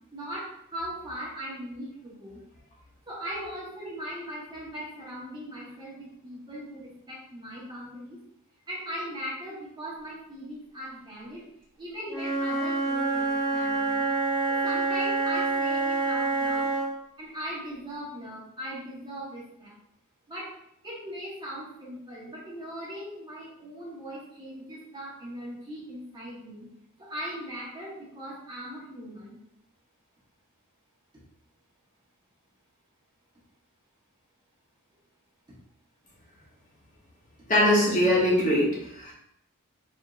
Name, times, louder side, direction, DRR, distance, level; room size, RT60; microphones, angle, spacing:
voice 1, 0.1-2.4 3.1-8.2 8.7-11.4 11.8-14.1 14.5-16.7 17.2-19.7 20.3-20.5 20.8-26.7 27.0-29.4, equal, 20° right, -7 dB, 1.3 m, -39 dB
Wind instrument woodwind instrument, 12.1-16.9, right 3 dB, 5° left, 1.1 m, -27 dB
voice 2, 37.5-39.1, left 1 dB, 35° left, -5 dB, 1.0 m, -22 dB
4.3 x 3.5 x 2.5 m, 0.76 s
head